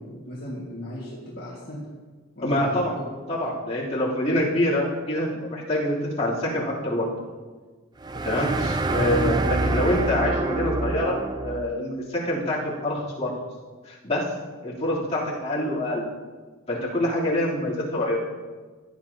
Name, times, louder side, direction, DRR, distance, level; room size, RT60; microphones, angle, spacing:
voice 1, 0.0-1.8 2.4-3.4 8.8-9.1, left 1 dB, 50° left, -6 dB, 1.9 m, -37 dB
voice 2, 2.4-2.9 3.3-7.1 8.2-11.2 11.4-13.3 13.8-14.3 14.6-16.0 16.7-18.2, left 1 dB, 30° left, -8 dB, 3.2 m, -25 dB
sound 1, 8.0-11.8, right 2 dB, 20° right, 0.3 m, -26 dB
16.5 x 9.7 x 2.9 m, 1.4 s
head